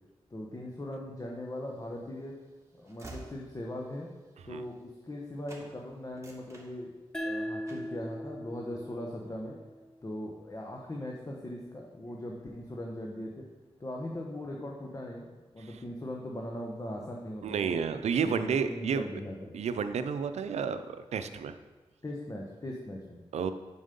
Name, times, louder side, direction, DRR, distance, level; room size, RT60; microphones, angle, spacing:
voice 1, 0.3-2.4 2.8-4.1 4.4-6.9 7.2-9.5 10.0-13.4 13.8-15.3 15.5-17.8 18.2-19.5 22.0-23.2, left 1 dB, 30° left, -1 dB, 1.2 m, -39 dB
Train / Slam, 1.6-5.2 5.5-5.7 6.1-7.3 7.7-8.0, right 2 dB, 25° right, 2.1 m, -51 dB
sound 1, 7.1-10.3, equal, 5° left, 1.1 m, -39 dB
voice 2, 17.4-19.0 19.5-21.5 23.3-23.5, right 6 dB, 85° right, 10 dB, 0.5 m, -31 dB
7.5 x 6.2 x 5.3 m, 1.3 s
cardioid pair, 55°, 11 cm